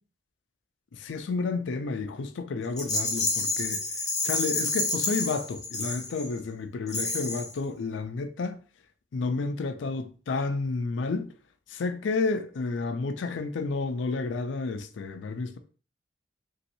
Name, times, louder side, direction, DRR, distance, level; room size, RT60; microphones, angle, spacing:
voice 1, 0.9-3.8 4.2-8.6 9.1-11.3 11.7-15.6, left 4 dB, 80° left, 0.4 m, -31 dB
Rattle, 2.8-6.4 6.9-7.6, left 3 dB, 20° left, 0.7 m, -29 dB
3.0 x 2.8 x 2.6 m
head